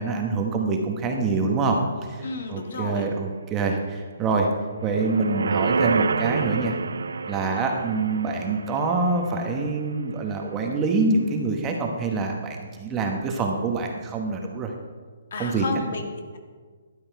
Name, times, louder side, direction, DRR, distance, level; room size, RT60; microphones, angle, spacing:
voice 1, 0.0-1.8 2.1-4.5 4.8-6.8 7.3-14.7 15.4-15.7, right 3 dB, 15° right, 2 dB, 1.1 m, -25 dB
voice 2, 2.2-3.1 15.3-16.4, left 3 dB, 60° left, 4 dB, 1.6 m, -32 dB
sound 1, 4.8-10.2 10.6-10.7, right 4 dB, 85° right, 0.4 m, -28 dB
12.5 x 8.7 x 4.7 m, 1.5 s
hypercardioid pair, 160°, 0 cm